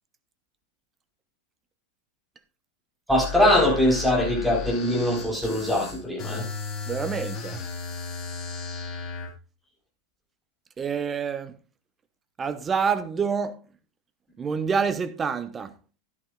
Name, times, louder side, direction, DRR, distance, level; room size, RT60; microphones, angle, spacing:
sound 1, 3.1-9.3, left 5 dB, 30° left, 2.5 m, -35 dB
voice 1, 3.1-6.5, left 1 dB, 5° right, 4.3 m, -22 dB
voice 2, 6.9-7.6 10.8-11.6 12.4-13.5 14.4-15.7, right 6 dB, 20° right, 0.9 m, -27 dB
12.0 x 11.0 x 2.4 m
figure-of-eight pair, 90°, 0 cm